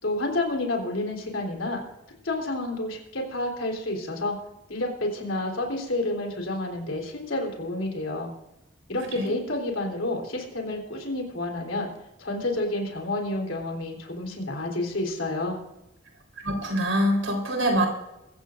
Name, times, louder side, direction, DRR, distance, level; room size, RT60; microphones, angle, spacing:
voice 1, 0.0-1.8 2.2-4.4 4.7-8.3 8.9-11.9 12.2-15.6, left 2 dB, 75° left, 1 dB, 3.6 m, -29 dB
voice 2, 9.0-9.3 16.4-17.9, equal, 75° right, 1 dB, 4.0 m, -25 dB
23.5 x 14.5 x 2.5 m, 0.94 s
head